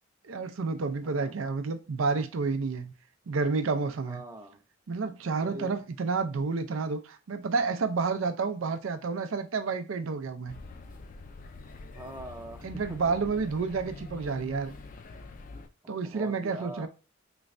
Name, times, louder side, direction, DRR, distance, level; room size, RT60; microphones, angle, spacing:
voice 1, 0.2-2.9 3.3-4.2 4.9-10.6 12.6-14.7 15.9-16.9, right 4 dB, 80° right, 0.5 m, -30 dB
voice 2, 1.0-1.3 4.1-4.6 5.4-5.8 11.9-12.6 12.9-13.0 15.8-16.9, right 1 dB, 15° right, 0.5 m, -43 dB
sound 1, 10.5-15.7, left 3 dB, 40° left, 0.4 m, -45 dB
3.2 x 3.1 x 2.5 m
head